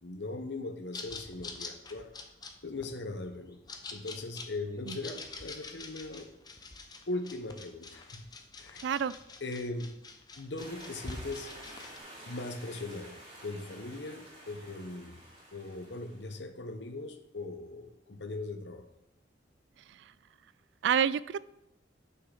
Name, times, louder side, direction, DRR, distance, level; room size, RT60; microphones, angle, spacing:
voice 1, 0.0-2.1 2.6-3.6 3.9-6.3 7.1-8.2 8.6-8.8 9.4-9.9 10.4-11.5 12.3-13.1 13.4-15.2 15.5-18.9, left 2 dB, 75° left, 7 dB, 0.9 m, -39 dB
sound 1, 0.9-12.0, left 3 dB, 25° left, 0.7 m, -46 dB
voice 2, 8.8-9.1 20.8-21.4, right 8 dB, 75° right, 18 dB, 0.3 m, -28 dB
sound 2, 10.6-16.4, right 1 dB, 35° right, 3.2 m, -50 dB
9.6 x 5.7 x 3.9 m, 0.84 s
head